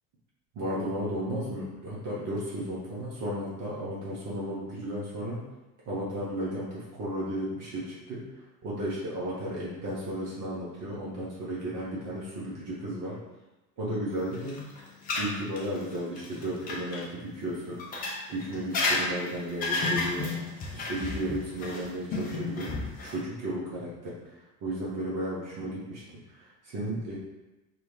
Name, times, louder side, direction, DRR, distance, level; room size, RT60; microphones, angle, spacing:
voice 1, 0.5-5.4 5.9-8.2 8.6-13.2 13.8-14.6 15.2-17.8 18.3-20.3 20.7-26.0 26.3-27.2, right 1 dB, 40° right, -7 dB, 0.8 m, -34 dB
sound 1, 14.3-17.0 17.8-23.2, left 3 dB, 20° left, 0.4 m, -32 dB
2.2 x 2.1 x 3.0 m, 1.1 s
figure-of-eight pair, 65°, 48 cm